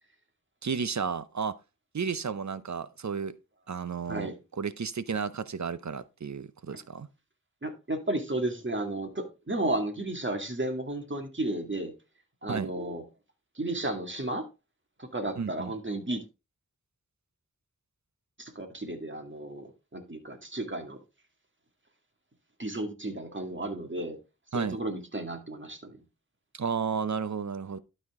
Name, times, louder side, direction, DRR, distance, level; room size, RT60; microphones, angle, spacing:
voice 1, 0.6-1.6 1.9-3.4 3.7-7.1 12.5-12.7 15.4-15.7 24.5-24.8 26.5-27.8, right 6 dB, 60° right, 0.7 m, -33 dB
voice 2, 7.6-11.9 12.4-13.0 13.6-14.5 15.0-16.2 18.4-21.0 22.6-24.2 24.5-26.0, right 1 dB, 35° right, 2.1 m, -33 dB
12.0 x 4.4 x 3.6 m
wide cardioid pair, 45°, 33 cm